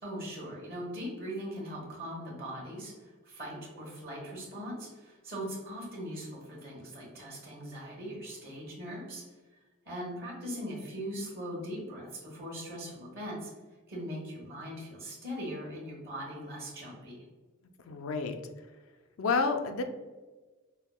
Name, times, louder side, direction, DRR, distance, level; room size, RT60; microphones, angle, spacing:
voice 1, 0.0-9.2 9.8-13.5 13.9-17.2, equal, 50° right, -4 dB, 1.2 m, -40 dB
voice 2, 17.8-18.3 19.2-19.8, left 4 dB, 75° left, 7 dB, 0.4 m, -29 dB
5.6 x 2.1 x 2.3 m, 1.3 s
head